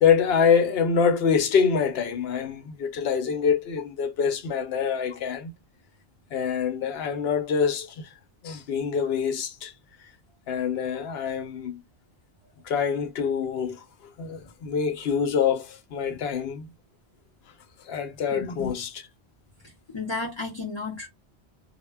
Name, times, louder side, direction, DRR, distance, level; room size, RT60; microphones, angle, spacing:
voice 1, 0.0-5.5 6.3-8.1 8.4-9.7 10.5-11.8 12.6-16.7 17.9-19.0, left 6 dB, 70° left, 0.8 m, -25 dB
voice 2, 18.3-18.7 19.9-21.1, left 3 dB, 35° left, 0.4 m, -32 dB
2.0 x 2.0 x 3.3 m
omnidirectional pair, 1.1 m